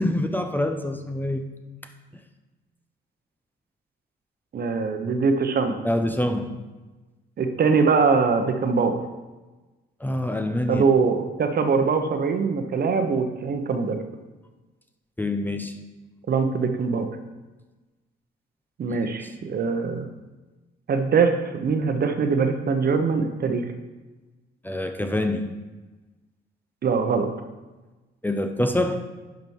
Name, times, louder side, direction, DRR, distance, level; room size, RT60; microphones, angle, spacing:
voice 1, 0.0-1.4 5.8-6.6 10.0-10.8 15.2-15.8 18.9-19.0 24.6-25.6 28.2-29.0, left 1 dB, 10° left, 6 dB, 0.7 m, -25 dB
voice 2, 4.5-5.8 7.4-9.0 10.7-14.0 16.3-17.1 18.8-20.1 20.9-23.7 26.8-27.3, right 5 dB, 50° right, 6 dB, 1.0 m, -22 dB
11.0 x 5.2 x 4.7 m, 1.2 s
cardioid pair, 90°, 20 cm